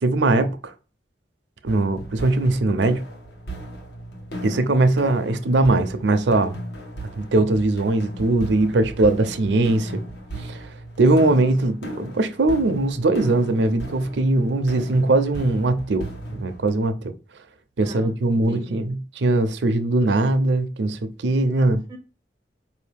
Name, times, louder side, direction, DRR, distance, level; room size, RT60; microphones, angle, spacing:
voice 1, 0.0-0.7 1.6-3.0 4.4-6.6 7.2-10.0 10.4-17.1 17.8-21.8, right 2 dB, 80° right, 0.6 m, -21 dB
sound 1, 1.7-16.7, right 1 dB, 70° left, 1.0 m, -37 dB
voice 2, 11.3-11.7 17.8-18.7 21.7-22.0, right 1 dB, 20° right, 0.5 m, -42 dB
4.8 x 2.7 x 3.4 m
head